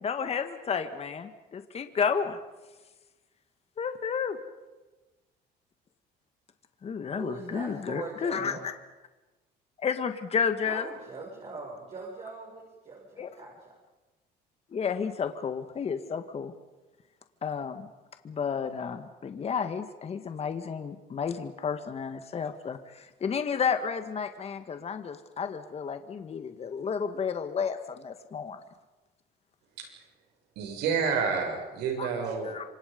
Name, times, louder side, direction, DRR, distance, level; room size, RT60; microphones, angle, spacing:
voice 1, 0.0-2.4 3.8-4.4 6.8-8.7 9.8-10.9 13.2-13.3 14.7-16.5 17.4-17.9 18.2-28.6 32.0-32.1 32.4-32.6, left 6 dB, 40° left, 8 dB, 1.8 m, -31 dB
voice 2, 7.2-8.7 10.6-13.7, right 3 dB, 40° right, -2 dB, 6.5 m, -41 dB
voice 3, 30.5-32.7, right 6 dB, 90° right, 3 dB, 6.7 m, -29 dB
28.0 x 25.0 x 5.3 m, 1.1 s
cardioid pair, 110°, 17 cm